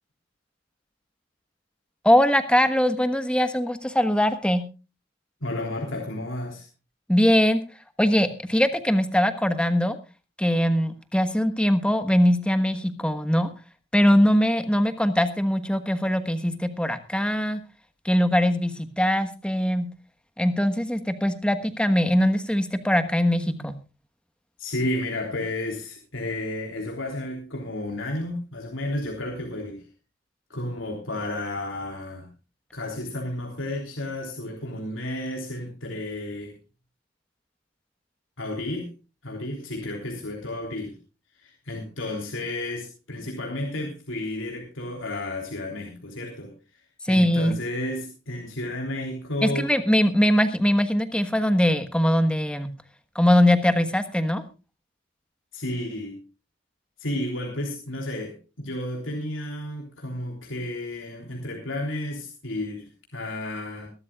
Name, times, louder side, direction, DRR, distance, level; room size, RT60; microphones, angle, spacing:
voice 1, 2.0-4.6 7.1-7.6 8.0-10.0 10.4-13.5 13.9-17.6 18.0-19.9 20.4-23.7 47.0-47.5 49.4-52.7 53.1-54.4, equal, 5° left, 9 dB, 1.3 m, -21 dB
voice 2, 5.4-6.7 23.4-23.7 24.6-29.9 30.5-32.3 32.7-36.6 38.4-38.9 39.2-41.0 41.3-49.7 55.5-56.2 57.0-63.9, left 1 dB, 75° left, 1 dB, 3.4 m, -32 dB
22.5 x 12.5 x 2.4 m, 0.31 s
head